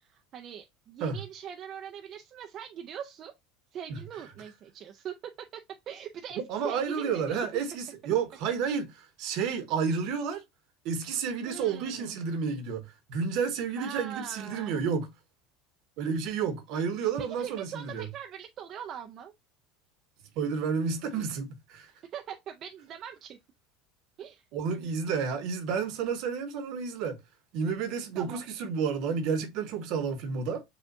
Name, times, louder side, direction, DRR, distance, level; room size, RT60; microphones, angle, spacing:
voice 1, 0.0-3.3 3.7-5.1 5.5-5.6 5.9-7.5 8.6-8.7 11.5-12.2 13.8-14.8 17.2-19.3 22.1-23.4 24.2-24.4 28.1-28.4, right 9 dB, 50° right, 0.5 m, -41 dB
voice 2, 6.5-8.9 9.2-10.4 10.8-15.1 16.0-18.1 20.4-21.9 24.5-27.2 27.5-30.6, right 6 dB, 65° right, 1.1 m, -31 dB
7.1 x 2.4 x 2.6 m
hypercardioid pair, 85°, 0 cm